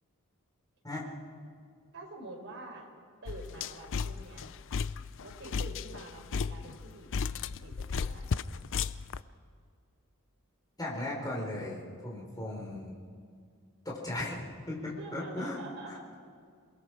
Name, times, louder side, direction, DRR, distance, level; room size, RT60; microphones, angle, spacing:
voice 1, 1.9-2.9 3.2-4.5 5.2-7.3 7.6-8.4 15.0-16.2, right 2 dB, 55° right, 0 dB, 4.6 m, -46 dB
sound 1, 3.3-9.2, left 5 dB, 60° left, 0.5 m, -35 dB
voice 2, 10.8-13.0 13.8-15.6 15.9-16.2, left 1 dB, 15° left, -3 dB, 4.4 m, -37 dB
28.0 x 20.0 x 4.9 m, 2.1 s
head